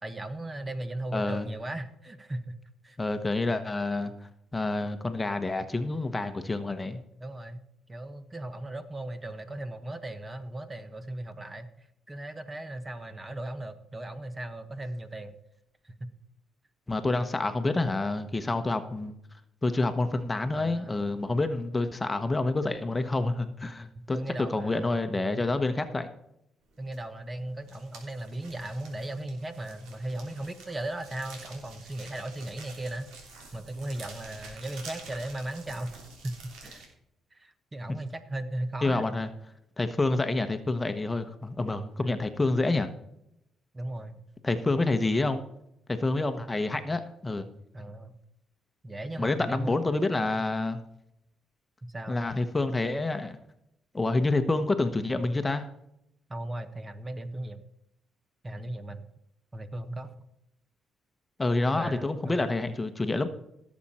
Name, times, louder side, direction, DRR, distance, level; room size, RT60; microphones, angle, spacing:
voice 1, 0.0-2.6 2.8-3.0 7.2-7.6 7.9-15.3 15.8-16.1 20.5-21.0 23.9-25.4 26.8-33.1 33.5-36.0 36.4-36.8 37.3-39.0 42.0-42.2 43.7-44.2 47.7-48.2 48.8-49.8 51.8-52.2 56.3-57.6 58.4-59.1 59.5-60.2 61.7-62.6, right 1 dB, 20° right, 9 dB, 1.2 m, -37 dB
voice 2, 1.1-1.5 3.0-4.1 4.5-7.0 16.9-19.1 19.6-24.2 24.5-26.1 37.9-38.0 38.8-39.3 39.8-42.9 44.4-45.4 45.9-47.5 49.2-50.8 52.1-53.4 53.9-55.7 61.4-63.3, left 2 dB, 20° left, 8 dB, 1.1 m, -28 dB
sound 1, 26.9-27.2 27.5-36.9, right 3 dB, 90° right, 3.3 m, -48 dB
17.0 x 7.4 x 4.3 m, 0.80 s
cardioid pair, 90°, 0 cm